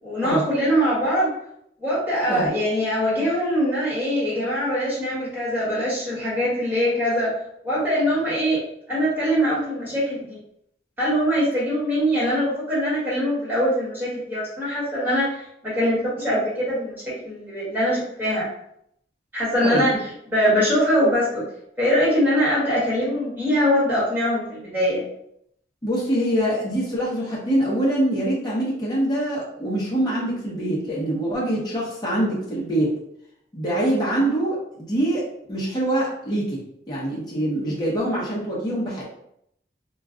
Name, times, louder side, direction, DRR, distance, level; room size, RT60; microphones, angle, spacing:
voice 1, 0.0-1.3 1.8-7.3 7.6-8.6 8.9-10.4 11.0-16.9 17.2-18.5 19.3-21.4 21.8-25.0, equal, 10° right, -9 dB, 1.2 m, -22 dB
voice 2, 25.8-33.0 33.5-39.0, right 1 dB, 20° left, -6 dB, 0.8 m, -24 dB
2.3 x 2.2 x 3.6 m, 0.72 s
head